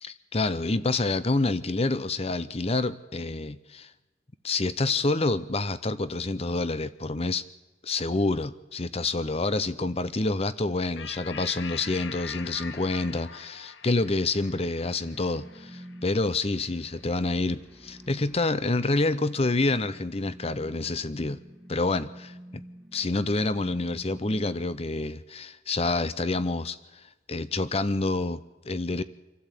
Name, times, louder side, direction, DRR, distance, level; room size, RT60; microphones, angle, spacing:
voice 1, 0.0-3.9 4.4-7.4 7.8-21.4 21.7-22.3 22.9-26.8 27.3-29.0, left 2 dB, 35° left, 15 dB, 0.8 m, -27 dB
sound 1, 11.0-17.8, left 6 dB, 75° left, 1.0 m, -44 dB
sound 2, 15.0-24.6, equal, 15° right, 1.5 m, -49 dB
26.5 x 12.5 x 8.4 m, 1.1 s
head